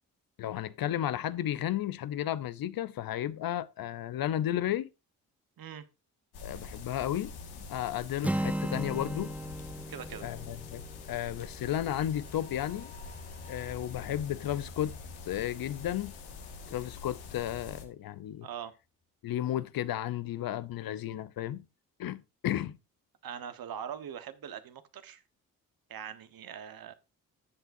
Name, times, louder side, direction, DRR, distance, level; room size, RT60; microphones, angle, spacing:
voice 1, 0.4-4.9 6.4-9.3 10.2-10.8 11.1-12.9 13.5-14.9 15.3-16.1 16.7-18.5 19.2-21.7 22.0-22.8, left 12 dB, 60° left, 0.7 m, -33 dB
sound 1, 6.3-17.8, left 4 dB, 75° left, 1.8 m, -46 dB
Acoustic guitar, 8.2-12.2, right 1 dB, 5° right, 0.5 m, -36 dB
voice 2, 9.9-10.2 18.4-18.7 23.2-25.2 25.9-26.9, right 8 dB, 60° right, 1.2 m, -42 dB
sound 2, 11.6-17.9 18.3-18.4, left 4 dB, 25° left, 2.5 m, -52 dB
13.5 x 8.1 x 2.6 m
hypercardioid pair, 45°, 40 cm